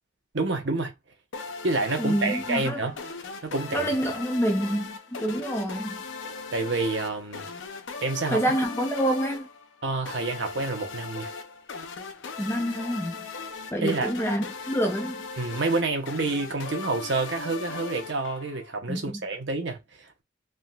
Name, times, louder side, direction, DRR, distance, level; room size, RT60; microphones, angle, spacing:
voice 1, 0.3-0.9 1.6-2.9 3.4-3.9 6.5-7.5 8.0-8.4 9.8-11.3 13.8-14.1 15.4-20.2, right 3 dB, 65° right, 0.9 m, -28 dB
sound 1, 1.3-18.8, left 4 dB, 70° left, 0.6 m, -38 dB
voice 2, 2.0-2.8 3.7-6.0 8.3-9.5 12.4-13.2 13.7-15.2 18.9-19.2, equal, 10° left, 0.5 m, -27 dB
3.5 x 2.6 x 2.3 m
head